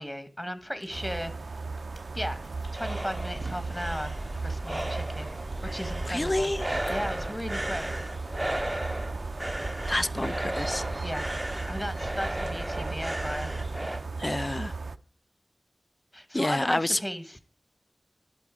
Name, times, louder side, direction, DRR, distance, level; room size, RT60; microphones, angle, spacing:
voice 1, 0.0-1.5 2.1-2.5 2.7-4.1 4.4-5.3 5.6-6.5 6.9-7.9 11.0-11.3 11.7-13.5 16.1-17.4, equal, 10° left, 1.3 m, -35 dB
sound 1, 0.6-7.2, left 1 dB, 65° left, 4.0 m, -55 dB
sound 2, 0.9-15.0, right 4 dB, 90° right, 0.5 m, -37 dB
sound 3, 2.2-14.0, right 1 dB, 20° right, 0.6 m, -34 dB
voice 2, 6.1-6.7 9.9-10.8 14.2-14.7 16.3-17.0, left 1 dB, 25° left, 0.5 m, -28 dB
11.5 x 8.3 x 5.0 m
wide cardioid pair, 75°, 0 cm